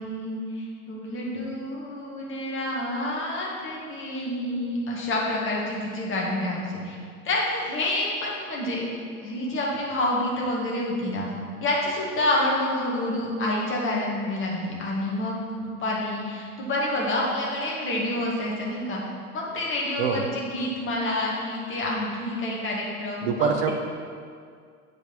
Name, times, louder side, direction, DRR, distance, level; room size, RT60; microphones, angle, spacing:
voice 1, 0.0-7.0 7.2-8.9 9.2-11.3 11.6-15.3 15.6-19.0 19.3-23.7, left 1 dB, 25° left, -3 dB, 2.0 m, -28 dB
voice 2, 23.2-23.7, right 6 dB, 45° right, 5 dB, 0.9 m, -24 dB
8.0 x 5.0 x 5.4 m, 2.1 s
figure-of-eight pair, 85°, 44 cm